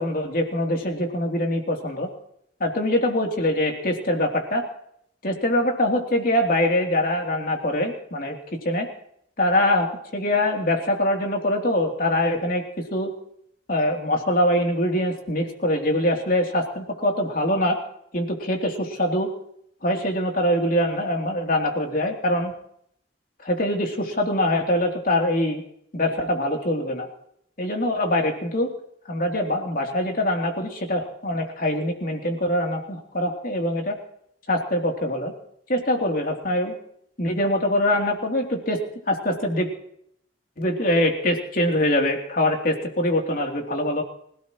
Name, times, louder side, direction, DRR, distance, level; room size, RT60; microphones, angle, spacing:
voice 1, 0.0-2.1 2.6-4.6 5.2-8.4 8.6-8.9 9.4-13.1 13.7-17.8 18.1-19.3 19.8-22.5 23.4-25.6 25.9-27.1 27.6-28.7 29.1-34.0 34.5-35.3 35.7-36.7 37.2-38.8 39.1-39.7 40.6-44.0, left 1 dB, 50° left, 2 dB, 3.2 m, -23 dB
25.5 x 17.5 x 3.1 m, 0.70 s
head